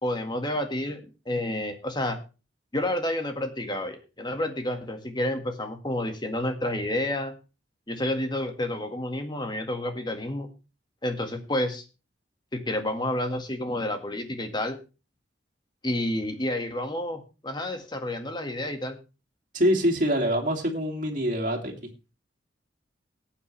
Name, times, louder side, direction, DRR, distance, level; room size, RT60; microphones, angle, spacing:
voice 1, 0.0-2.2 2.7-7.3 7.9-10.5 11.0-11.8 12.5-14.8 15.8-19.0, left 1 dB, 25° left, 6 dB, 1.8 m, -30 dB
voice 2, 19.5-21.7, equal, 45° right, 1 dB, 2.6 m, -24 dB
18.0 x 8.9 x 3.3 m, 0.31 s
head